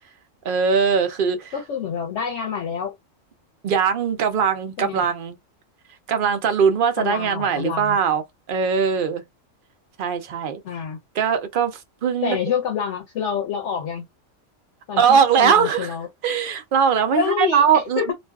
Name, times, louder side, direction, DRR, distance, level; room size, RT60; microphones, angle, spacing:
voice 1, 0.4-1.5 3.6-5.4 6.1-8.2 8.5-9.2 10.0-10.6 11.2-12.4 15.0-15.9 16.2-18.1, right 7 dB, 60° right, 0.5 m, -20 dB
voice 2, 1.5-2.9 4.8-5.0 7.0-8.0 10.6-11.0 12.2-14.0 14.9-16.1 17.2-18.1, left 7 dB, 70° left, 0.9 m, -27 dB
2.5 x 2.3 x 2.2 m
omnidirectional pair, 1.3 m